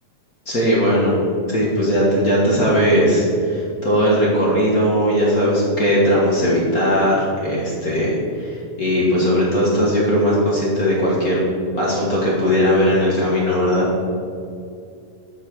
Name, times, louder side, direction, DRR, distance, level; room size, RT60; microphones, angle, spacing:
voice 1, 0.4-1.2 1.5-11.4 11.7-13.9, equal, 35° left, -5 dB, 1.6 m, -18 dB
8.4 x 5.8 x 6.4 m, 2.4 s
omnidirectional pair, 3.5 m